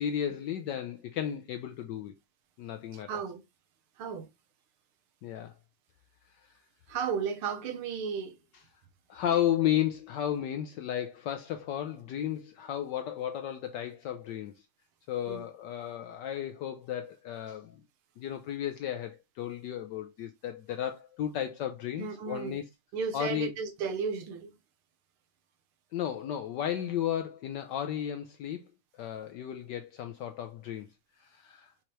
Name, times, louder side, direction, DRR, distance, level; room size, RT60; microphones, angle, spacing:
voice 1, 0.0-2.1 2.6-3.1 5.2-5.5 9.1-14.5 15.1-17.8 18.2-22.6 23.1-23.5 25.9-28.6 28.9-30.9 31.2-31.7, left 10 dB, 75° left, 1.0 m, -33 dB
voice 2, 2.9-3.4 4.0-4.3 6.9-8.4 9.3-9.4 15.3-15.4 22.0-22.6 22.9-24.6, right 6 dB, 85° right, 1.7 m, -34 dB
5.6 x 2.9 x 3.1 m
omnidirectional pair, 2.3 m